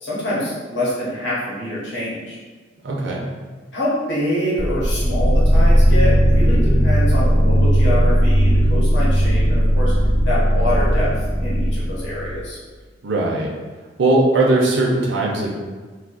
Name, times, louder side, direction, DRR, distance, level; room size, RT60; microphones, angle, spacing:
voice 1, 0.0-2.4 3.7-9.9 10.3-11.1 11.4-12.6, equal, 90° left, -8 dB, 1.0 m, -25 dB
voice 2, 2.8-3.2 13.0-13.5 14.0-15.5, right 2 dB, 80° right, -2 dB, 0.5 m, -18 dB
sound 1, 4.6-12.4, equal, 15° left, 0.3 m, -16 dB
2.7 x 2.4 x 3.8 m, 1.4 s
head